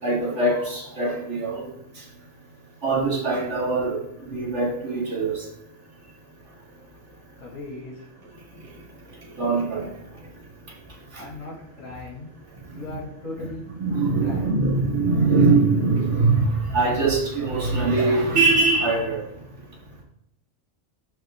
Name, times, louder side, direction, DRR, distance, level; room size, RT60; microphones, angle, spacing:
voice 1, 0.0-1.7 2.8-5.4 9.4-9.9 11.1-11.2 13.4-13.5 13.8-19.2, right 3 dB, 55° right, -3 dB, 2.3 m, -22 dB
voice 2, 7.4-8.1 11.1-12.3 12.7-13.6 14.2-14.6, left 2 dB, 70° left, -5 dB, 3.6 m, -37 dB
11.5 x 4.7 x 3.8 m, 0.81 s
omnidirectional pair, 1.4 m